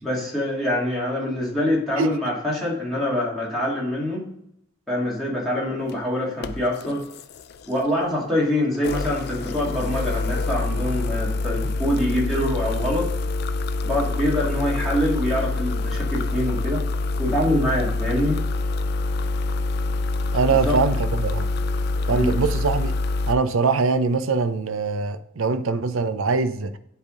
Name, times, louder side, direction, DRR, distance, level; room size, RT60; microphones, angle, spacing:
voice 1, 0.0-4.3 4.9-7.0 7.7-13.1 13.8-16.8 17.2-18.4 20.5-20.8 22.1-22.4, left 1 dB, ahead, 1.8 m, -25 dB
sound 1, 5.8-5.9 6.4-8.0 8.7-23.3, left 3 dB, 50° left, 0.3 m, -26 dB
voice 2, 20.3-21.5 22.1-22.9 23.3-26.7, right 4 dB, 80° right, 0.6 m, -22 dB
10.5 x 3.5 x 3.7 m
head